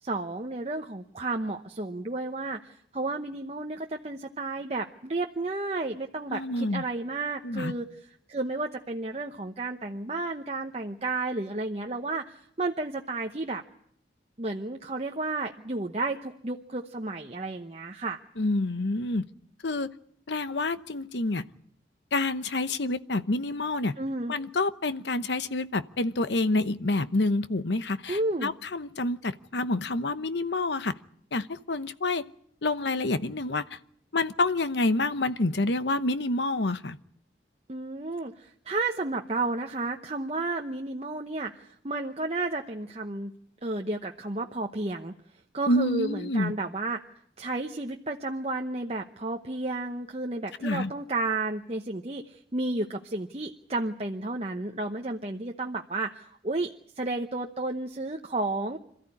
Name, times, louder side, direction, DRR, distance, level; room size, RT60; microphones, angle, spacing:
voice 1, 0.0-7.9 8.3-13.6 14.4-18.2 24.0-24.3 28.1-28.5 37.7-43.3 43.6-45.1 45.5-47.0 47.4-58.8, right 2 dB, 35° right, 3 dB, 0.9 m, -32 dB
voice 2, 6.3-6.8 7.4-7.7 18.4-19.3 19.6-19.9 20.3-21.4 22.1-23.9 24.3-30.9 31.3-32.2 32.6-33.6 34.1-37.0 45.7-46.5 50.6-50.9, left 2 dB, 75° left, 13 dB, 0.9 m, -28 dB
27.0 x 14.0 x 9.9 m, 0.69 s
head